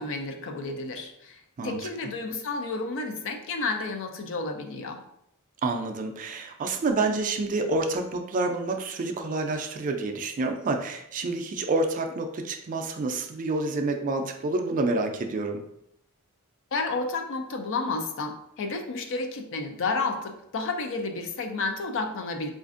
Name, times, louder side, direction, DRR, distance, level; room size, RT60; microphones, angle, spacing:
voice 1, 0.0-1.4 1.6-5.0 16.7-22.5, left 3 dB, 60° left, 5 dB, 0.4 m, -31 dB
voice 2, 5.6-15.6, right 2 dB, 35° right, 5 dB, 0.3 m, -28 dB
4.1 x 2.5 x 2.5 m, 0.77 s
head